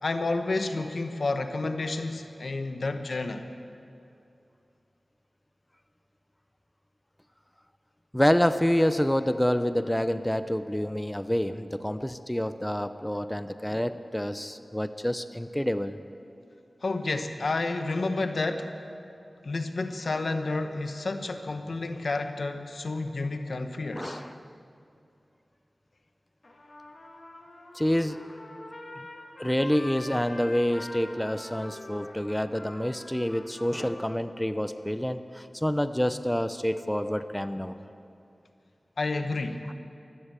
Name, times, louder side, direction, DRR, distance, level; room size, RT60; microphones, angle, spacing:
voice 1, 0.0-3.5 16.8-18.7 19.4-24.2 39.0-39.7, left 3 dB, 75° left, 7 dB, 0.9 m, -30 dB
voice 2, 8.1-16.0 24.0-24.4 27.7-28.2 29.0-29.1 29.4-37.8, equal, 10° left, 11 dB, 0.7 m, -27 dB
Trumpet, 26.4-34.1, left 1 dB, 55° left, 2.5 m, -44 dB
13.5 x 12.5 x 8.3 m, 2.6 s
cardioid pair, 40°, 0 cm